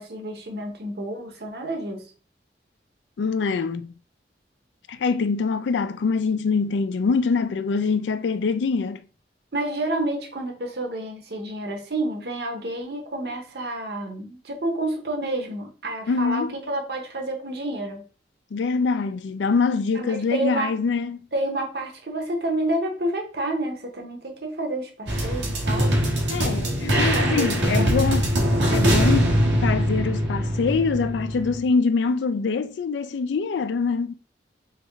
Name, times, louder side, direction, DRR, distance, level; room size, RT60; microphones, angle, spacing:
voice 1, 0.0-2.1 9.5-18.0 20.0-20.7 21.3-25.9 26.9-28.2, right 1 dB, 60° right, 0.9 m, -29 dB
voice 2, 3.2-3.9 4.9-9.0 16.1-16.6 18.5-21.3 26.3-28.3 28.7-34.1, left 4 dB, 85° left, 0.4 m, -24 dB
sound 1, 25.1-31.6, equal, 90° right, 1.3 m, -22 dB
3.4 x 3.0 x 3.5 m
head